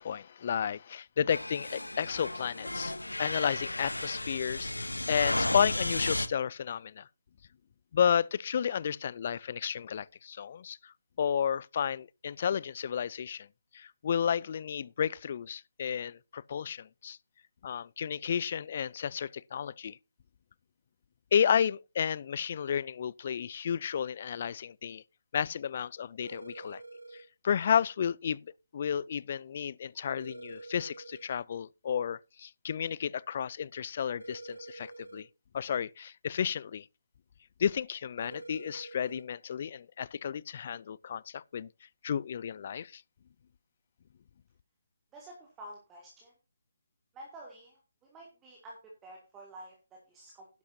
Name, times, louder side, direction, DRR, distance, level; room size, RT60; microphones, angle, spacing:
voice 1, 0.0-2.9 3.2-7.1 7.9-13.5 13.7-17.2 17.6-20.0 21.3-25.0 25.3-26.8 27.1-28.4 28.7-35.3 35.5-36.9 37.6-41.7 42.0-43.0, left 8 dB, 40° left, 0.5 m, -32 dB
sound 1, 1.3-6.3, left 1 dB, 90° left, 1.2 m, -34 dB
sound 2, 26.2-27.2 30.2-31.2 34.2-35.2 38.2-39.2, right 2 dB, 90° right, 2.9 m, -46 dB
voice 2, 45.1-46.3 47.1-50.5, right 1 dB, 15° right, 2.8 m, -50 dB
12.0 x 11.5 x 2.8 m
figure-of-eight pair, 150°, 0 cm